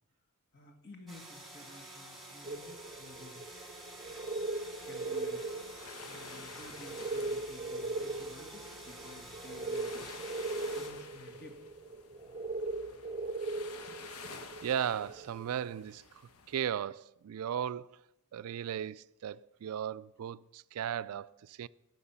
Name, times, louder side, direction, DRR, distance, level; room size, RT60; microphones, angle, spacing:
voice 1, 0.5-3.5 4.8-5.5 6.0-10.0 10.7-11.6, left 2 dB, 50° left, 1.8 m, -53 dB
sound 1, 1.1-10.9, right 1 dB, ahead, 2.1 m, -50 dB
sound 2, 2.4-15.7, right 2 dB, 25° right, 0.7 m, -39 dB
sound 3, 4.1-16.6, left 5 dB, 80° left, 1.0 m, -52 dB
voice 2, 14.6-16.0 16.5-18.0 18.3-21.7, right 9 dB, 75° right, 0.3 m, -36 dB
18.0 x 6.3 x 5.7 m
head